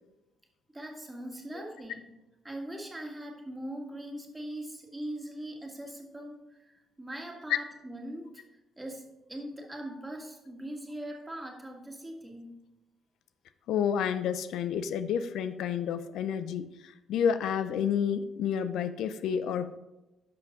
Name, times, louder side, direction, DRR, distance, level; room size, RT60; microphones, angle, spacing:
voice 1, 0.7-2.0 2.4-12.5, right 1 dB, 15° right, 1 dB, 1.9 m, -41 dB
voice 2, 13.7-19.8, left 8 dB, 80° left, 12 dB, 0.5 m, -30 dB
11.0 x 5.8 x 3.8 m, 0.99 s
cardioid pair, 90°, 0 cm